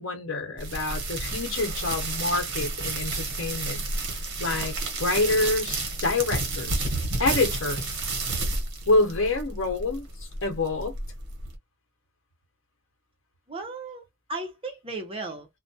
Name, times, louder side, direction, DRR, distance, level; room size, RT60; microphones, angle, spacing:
voice 1, 0.0-3.9 4.4-4.7 5.0-8.0 8.9-10.1 10.4-10.9, left 3 dB, 65° left, 1.0 m, -27 dB
sound 1, 0.6-11.6, right 3 dB, 55° right, 1.0 m, -31 dB
voice 2, 13.5-15.5, right 2 dB, 25° right, 0.7 m, -36 dB
2.3 x 2.1 x 2.6 m
head